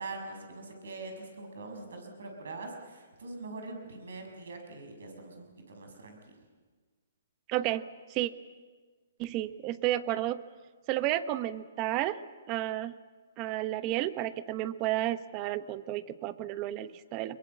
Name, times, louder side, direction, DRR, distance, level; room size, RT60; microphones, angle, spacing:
voice 1, 0.0-6.2, right 3 dB, 75° right, 4 dB, 6.4 m, -43 dB
voice 2, 7.5-7.8 8.1-8.3 9.2-10.4 10.9-12.2 12.5-12.9 13.4-17.4, right 14 dB, 30° right, 14 dB, 1.0 m, -31 dB
25.0 x 22.0 x 8.5 m, 1.4 s
hypercardioid pair, 145°, 0 cm